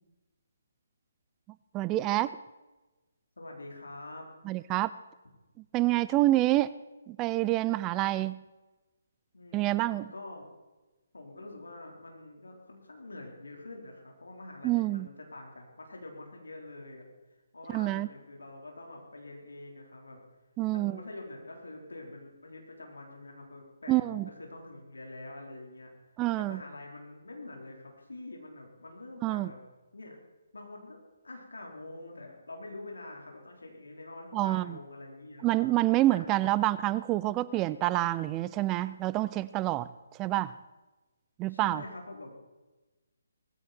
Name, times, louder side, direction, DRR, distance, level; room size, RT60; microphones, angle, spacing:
voice 1, 1.7-2.4 4.5-4.9 5.7-6.7 7.1-8.4 9.5-10.1 14.6-15.1 17.7-18.1 20.6-21.0 23.9-24.3 26.2-26.6 29.2-29.5 34.3-34.8 35.4-39.9 40.2-40.5 41.4-41.8, right 17 dB, 20° right, 17 dB, 0.4 m, -27 dB
voice 2, 3.4-4.3 9.3-10.5 11.1-17.0 17.5-20.2 20.7-25.9 26.4-29.6 29.9-30.2 30.5-35.7 36.1-36.7 41.5-42.4, left 2 dB, 75° left, 1 dB, 4.2 m, -46 dB
19.5 x 15.0 x 4.5 m, 1.1 s
figure-of-eight pair, 140°, 0 cm